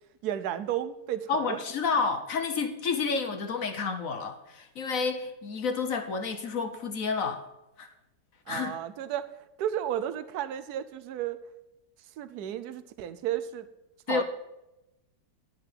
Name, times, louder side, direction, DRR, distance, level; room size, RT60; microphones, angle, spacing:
voice 1, 0.2-1.6 8.5-9.3 9.6-11.4 12.2-13.7 14.1-14.2, right 11 dB, 65° right, 13 dB, 1.2 m, -33 dB
voice 2, 1.3-7.4 7.8-7.9 8.5-8.8 14.1-14.2, left 5 dB, 55° left, 6 dB, 1.1 m, -30 dB
10.5 x 5.7 x 7.8 m, 0.92 s
omnidirectional pair, 1.9 m